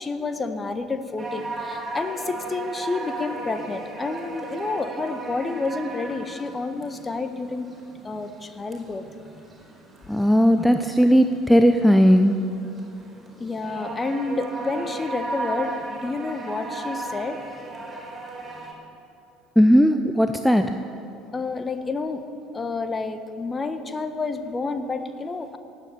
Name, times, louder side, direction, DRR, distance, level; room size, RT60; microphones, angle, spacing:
voice 1, 0.0-7.7 8.0-9.0 13.4-17.4 21.3-22.2 22.5-25.6, left 3 dB, 20° left, 9 dB, 1.3 m, -29 dB
sound 1, 1.2-18.7, right 2 dB, 15° right, 4.5 m, -36 dB
voice 2, 10.1-12.4 19.6-20.7, equal, ahead, 7 dB, 0.7 m, -17 dB
16.5 x 9.2 x 9.6 m, 2.6 s
figure-of-eight pair, 60°, 0 cm